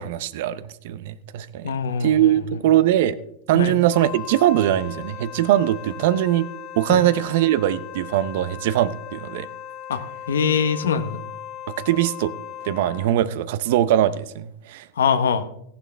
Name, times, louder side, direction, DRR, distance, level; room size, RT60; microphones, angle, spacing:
voice 1, 0.0-1.7 2.0-3.2 3.5-6.5 6.8-9.5 11.7-12.3 12.6-14.9, right 12 dB, 65° right, 15 dB, 0.7 m, -21 dB
voice 2, 1.6-2.3 3.5-3.7 6.9-7.0 9.9-10.0 10.3-11.2 15.0-15.4, left 6 dB, 85° left, 10 dB, 1.0 m, -22 dB
Wind instrument woodwind instrument, 3.9-13.2, left 10 dB, 35° left, 1.4 m, -38 dB
14.5 x 11.5 x 3.4 m, 0.75 s
hypercardioid pair, 105°, 0 cm